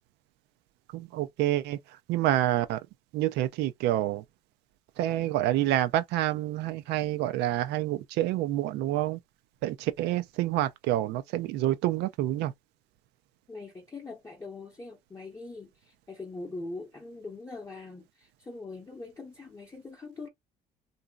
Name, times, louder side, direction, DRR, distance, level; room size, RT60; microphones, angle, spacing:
voice 1, 0.9-1.8 2.1-2.8 3.1-4.2 5.0-9.2 9.6-12.5, right 14 dB, 85° right, 0.4 m, -28 dB
voice 2, 13.5-20.3, left 3 dB, 15° left, 0.7 m, -42 dB
3.0 x 2.6 x 2.2 m
cardioid pair, 110°, 17 cm